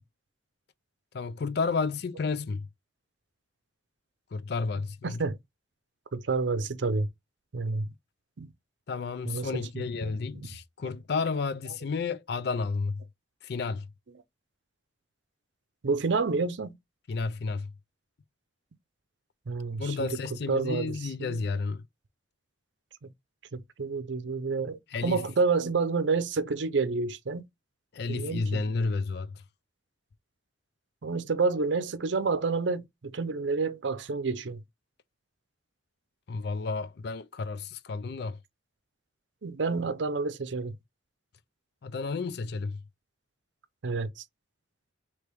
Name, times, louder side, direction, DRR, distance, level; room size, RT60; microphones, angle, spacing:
voice 1, 1.1-2.7 4.3-5.2 8.9-13.0 13.4-13.9 17.1-17.7 19.8-21.8 24.9-25.2 27.9-29.4 36.3-38.4 41.8-42.8, left 4 dB, 55° left, 0.4 m, -31 dB
voice 2, 6.1-7.1 7.5-7.9 8.4-8.5 9.3-10.1 15.8-16.7 19.5-20.1 20.5-20.9 21.2-21.4 23.0-23.1 23.8-27.4 28.1-28.6 31.0-34.6 39.4-40.7 43.8-44.2, right 4 dB, 75° right, 0.6 m, -29 dB
3.3 x 3.0 x 4.6 m
head